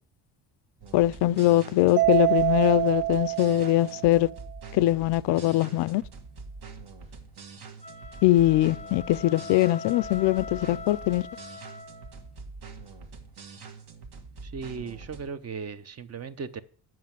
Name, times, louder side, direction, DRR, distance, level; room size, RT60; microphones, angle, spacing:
sound 1, 0.8-15.3, right 4 dB, 60° right, 1.6 m, -45 dB
voice 1, 0.9-4.3 4.7-6.0 8.2-11.2, left 15 dB, 70° left, 0.5 m, -22 dB
Mallet percussion, 2.0-4.4, right 19 dB, 80° right, 0.5 m, -26 dB
sound 2, 7.7-12.3, left 5 dB, 15° left, 0.4 m, -42 dB
voice 2, 14.4-16.6, right 5 dB, 35° right, 0.8 m, -37 dB
7.6 x 6.0 x 7.4 m
cardioid pair, 100°, 43 cm